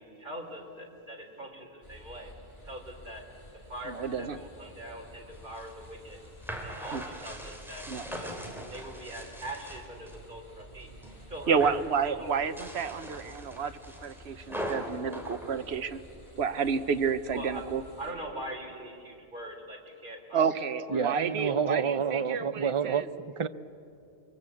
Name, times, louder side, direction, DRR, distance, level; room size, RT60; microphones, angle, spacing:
voice 1, 0.0-2.3 2.6-3.2 3.5-6.2 6.5-7.9 8.2-8.5 8.7-10.9 11.3-11.7 12.1-12.3 17.3-17.7 18.0-20.4 20.9-21.1, right 1 dB, 50° right, 1 dB, 3.9 m, -42 dB
sound 1, 1.8-18.1, left 1 dB, 25° left, 3.5 m, -52 dB
voice 2, 3.9-4.4 6.9-7.0 7.9-8.1 11.5-16.0 16.4-17.8 20.3-23.1, right 6 dB, 85° right, 12 dB, 1.2 m, -30 dB
sound 2, 5.3-10.2 10.6-11.2 11.4-11.9 12.4-16.3, equal, ahead, 3.1 m, -41 dB
voice 3, 20.9-23.5, right 6 dB, 35° right, 13 dB, 0.6 m, -29 dB
29.5 x 22.5 x 8.4 m, 2.7 s
omnidirectional pair, 1.1 m